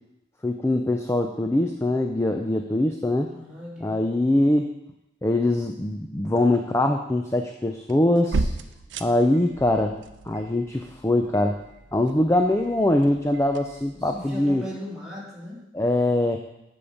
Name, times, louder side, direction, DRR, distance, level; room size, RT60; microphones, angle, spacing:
voice 1, 0.4-3.3 3.8-4.7 5.2-8.5 9.0-10.0 10.3-11.6 11.9-14.6 15.7-16.4, left 1 dB, 15° left, 4 dB, 0.4 m, -22 dB
voice 2, 3.3-4.0 13.9-15.6, equal, 5° right, -7 dB, 2.8 m, -38 dB
sound 1, 7.9-14.3, right 3 dB, 75° right, 0.6 m, -35 dB
8.6 x 5.4 x 7.1 m, 0.89 s
head